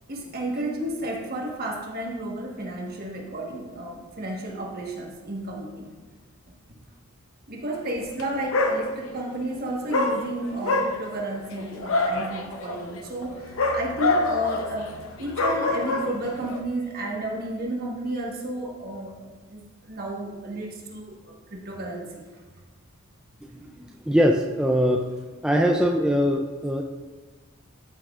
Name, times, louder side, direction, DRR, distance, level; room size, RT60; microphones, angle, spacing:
voice 1, 0.1-5.9 6.7-6.8 7.5-22.1, right 1 dB, 45° right, 0 dB, 1.3 m, -32 dB
Dog, 8.1-8.2 8.5-9.3 9.9-16.6, left 2 dB, 65° left, 0.8 m, -26 dB
voice 2, 23.5-25.1 25.4-26.8, equal, 5° right, 1 dB, 0.3 m, -22 dB
13.0 x 5.9 x 2.4 m, 1.3 s
head